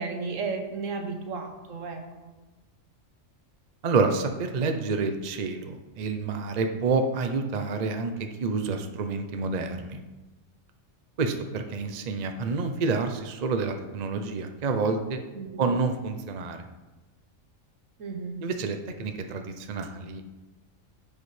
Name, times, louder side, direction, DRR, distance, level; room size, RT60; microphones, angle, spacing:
voice 1, 0.0-2.3 15.3-15.6 18.0-18.5, right 4 dB, 75° right, 4 dB, 1.4 m, -34 dB
voice 2, 3.8-8.1 8.4-10.0 11.2-15.2 15.6-16.6 18.4-20.2, right 4 dB, 40° right, 5 dB, 0.6 m, -28 dB
9.6 x 7.2 x 3.3 m, 1.1 s
omnidirectional pair, 1.3 m